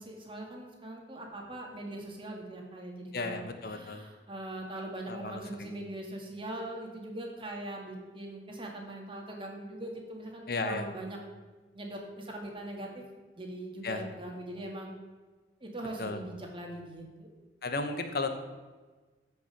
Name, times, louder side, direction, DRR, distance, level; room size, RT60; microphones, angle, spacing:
voice 1, 0.0-11.2 11.7-13.0 13.3-15.0 15.6-17.3, right 1 dB, 30° right, 1 dB, 2.0 m, -41 dB
voice 2, 3.1-4.0 5.1-5.7 10.5-10.8 13.8-14.0 16.0-16.2 17.6-18.4, left 3 dB, 55° left, 7 dB, 0.9 m, -34 dB
14.5 x 5.6 x 6.0 m, 1.3 s
head